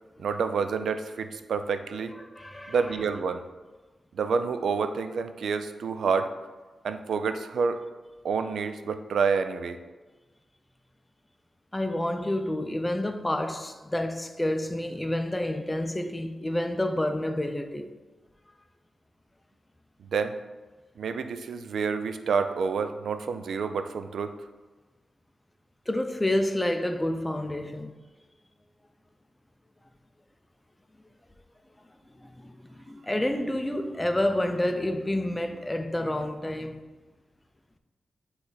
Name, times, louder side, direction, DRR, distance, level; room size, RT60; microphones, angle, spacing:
voice 1, 0.2-2.1 2.7-3.4 4.1-6.3 6.8-7.8 8.2-9.8 20.0-20.3 21.0-24.3, right 5 dB, 80° right, 0.4 m, -28 dB
voice 2, 2.3-2.8 11.7-17.9 25.9-28.0 32.2-36.8, left 1 dB, 10° left, 0.4 m, -29 dB
8.5 x 3.3 x 4.0 m
wide cardioid pair, 135°, 0 cm